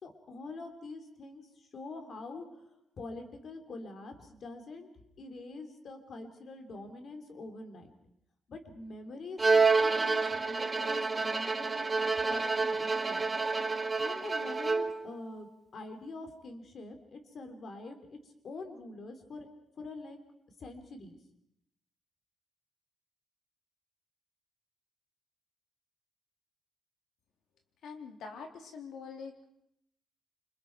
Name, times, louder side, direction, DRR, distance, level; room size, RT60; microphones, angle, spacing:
voice 1, 0.0-2.7 3.0-4.9 5.2-7.9 8.5-12.0 12.3-13.3 14.0-19.5 19.8-20.2 20.6-21.2, left 3 dB, 45° left, 6 dB, 3.2 m, -45 dB
Bowed string instrument, 9.4-15.1, right 4 dB, 20° right, 1.2 m, -28 dB
voice 2, 27.8-29.4, left 5 dB, 75° left, 3 dB, 3.4 m, -44 dB
28.5 x 26.0 x 4.6 m, 0.76 s
wide cardioid pair, 170°, 0 cm